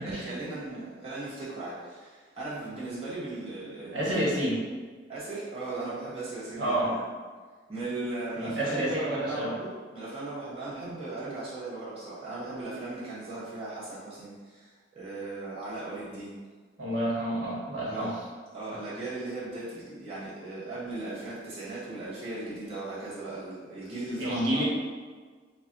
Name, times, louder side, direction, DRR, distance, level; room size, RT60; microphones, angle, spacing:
voice 1, 0.1-4.3 5.1-7.0 7.7-16.4 17.8-18.2 18.5-24.6, right 2 dB, 30° right, -9 dB, 0.9 m, -37 dB
voice 2, 3.9-4.6 6.6-6.9 8.4-9.5 16.8-18.1 24.2-24.6, right 1 dB, 75° right, -6 dB, 1.1 m, -29 dB
3.4 x 2.2 x 3.8 m, 1.5 s
head